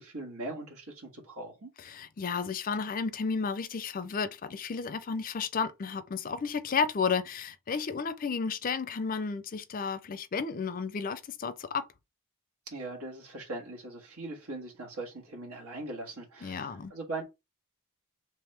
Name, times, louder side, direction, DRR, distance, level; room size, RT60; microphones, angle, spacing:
voice 1, 0.0-1.7 12.7-17.2, right 2 dB, 85° right, 1.8 m, -40 dB
voice 2, 1.9-11.9 16.4-16.9, left 5 dB, 40° left, 0.4 m, -32 dB
3.5 x 3.0 x 3.3 m
head